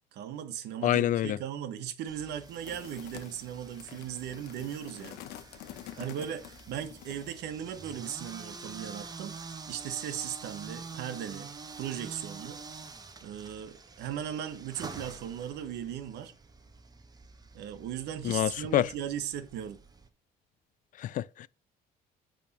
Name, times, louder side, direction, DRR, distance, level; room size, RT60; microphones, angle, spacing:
voice 1, 0.1-5.2 6.0-9.4 9.7-11.5 11.8-12.6 13.2-16.3 17.5-19.8, right 10 dB, 80° right, 1.2 m, -37 dB
voice 2, 0.8-1.4 18.2-18.9 21.0-21.5, left 12 dB, 50° left, 0.4 m, -27 dB
sound 1, 2.1-20.1, right 4 dB, 25° right, 1.0 m, -47 dB
sound 2, 2.4-7.5, left 12 dB, 85° left, 0.9 m, -48 dB
8.4 x 3.5 x 6.6 m
cardioid pair, 110°, 17 cm